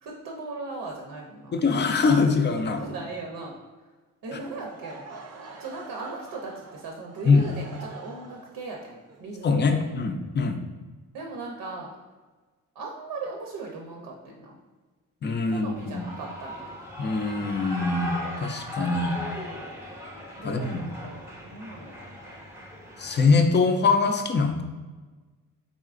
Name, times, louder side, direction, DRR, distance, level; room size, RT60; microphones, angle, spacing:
voice 1, 0.0-1.6 2.7-3.9 4.2-5.1 5.6-9.9 11.1-11.9 12.7-14.6 15.5-16.8 20.4-22.2, right 3 dB, 85° right, 0 dB, 0.7 m, -38 dB
voice 2, 1.5-2.8 7.3-7.5 9.4-10.6 15.2-16.0 17.0-19.2 20.4-20.9 23.0-24.6, left 4 dB, 30° left, 5 dB, 0.4 m, -23 dB
Laughter / Crowd, 4.4-10.3, right 3 dB, 45° right, 0.5 m, -45 dB
Shout / Cheering, 15.8-23.5, left 1 dB, 10° right, 0.6 m, -38 dB
3.9 x 3.6 x 2.4 m, 1.3 s
cardioid pair, 100°, 35 cm